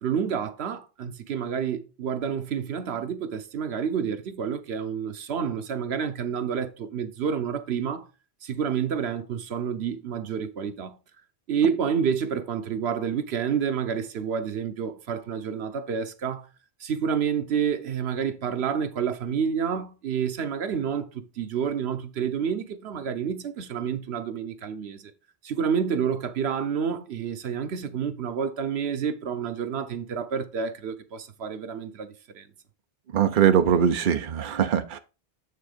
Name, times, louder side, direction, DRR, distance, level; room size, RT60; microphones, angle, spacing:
voice 1, 0.0-8.1 8.4-10.9 11.5-16.5 16.8-25.1 25.4-32.5, right 7 dB, 90° right, 1.1 m, -29 dB
voice 2, 33.1-35.0, right 8 dB, 55° right, 0.8 m, -21 dB
8.9 x 3.7 x 5.0 m
omnidirectional pair, 1.1 m